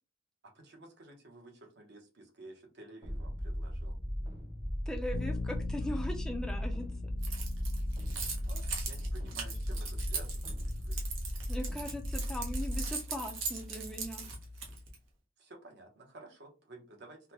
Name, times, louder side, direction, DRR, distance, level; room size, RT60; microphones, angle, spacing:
voice 1, 0.5-4.0 7.8-7.9 8.4-11.0 15.4-17.3, right 2 dB, 60° right, 2 dB, 0.9 m, -53 dB
sound 1, 3.0-12.9, equal, 25° right, 1.0 m, -37 dB
voice 2, 4.9-7.1 11.5-14.2, left 1 dB, 5° left, 3 dB, 0.4 m, -39 dB
Bass guitar, 5.1-14.9, left 3 dB, 75° left, 0.3 m, -42 dB
Keys jangling, 7.2-15.0, right 5 dB, 85° right, 0.9 m, -40 dB
3.7 x 2.1 x 2.9 m, 0.32 s
head